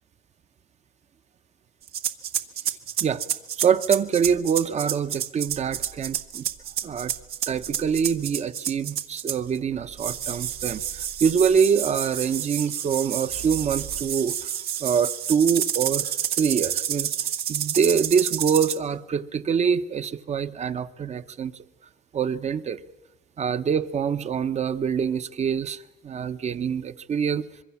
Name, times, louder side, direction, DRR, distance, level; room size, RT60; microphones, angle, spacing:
sound 1, 1.9-9.6 10.0-18.8, right 9 dB, 65° right, 1.4 m, -29 dB
voice 1, 3.6-6.4 6.8-7.1 7.5-14.5 14.8-17.1 17.5-21.5 22.1-22.8 23.4-27.5, right 7 dB, 40° right, 12 dB, 1.1 m, -25 dB
sound 2, 4.2-4.5 5.4-8.4 9.6-11.9 13.2-14.3, right 7 dB, 85° right, 2.4 m, -46 dB
25.5 x 22.5 x 7.2 m, 1.1 s
cardioid pair, 110°, 17 cm